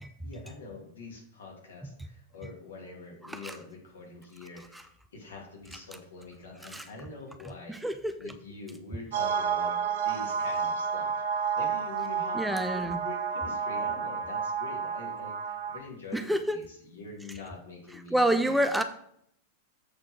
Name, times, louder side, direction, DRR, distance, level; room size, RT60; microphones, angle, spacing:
voice 1, 0.2-7.8 8.2-18.6, left 3 dB, 65° left, -2 dB, 2.7 m, -45 dB
voice 2, 3.2-3.6 4.7-4.8 6.7-6.8 7.7-8.3 12.3-13.0 16.1-16.6 18.1-18.8, right 1 dB, 5° right, 8 dB, 0.5 m, -28 dB
sound 1, 9.1-15.8, right 6 dB, 55° right, 0.8 m, -30 dB
7.5 x 4.5 x 6.1 m, 0.69 s
figure-of-eight pair, 90°, 0 cm